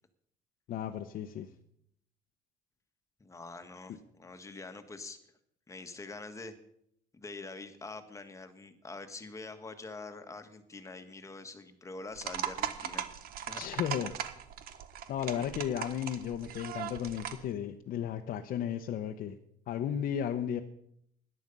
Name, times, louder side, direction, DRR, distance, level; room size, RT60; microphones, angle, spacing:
voice 1, 0.7-1.5 13.5-14.1 15.1-19.4 19.7-20.6, left 9 dB, 65° left, 4 dB, 1.0 m, -34 dB
voice 2, 3.2-5.2 5.7-6.5 7.1-13.1 13.3-13.6, left 3 dB, 20° left, 8 dB, 1.7 m, -45 dB
sound 1, 12.2-17.5, right 10 dB, 70° right, 1.4 m, -39 dB
17.5 x 11.5 x 5.5 m, 0.71 s
cardioid pair, 120°, 16 cm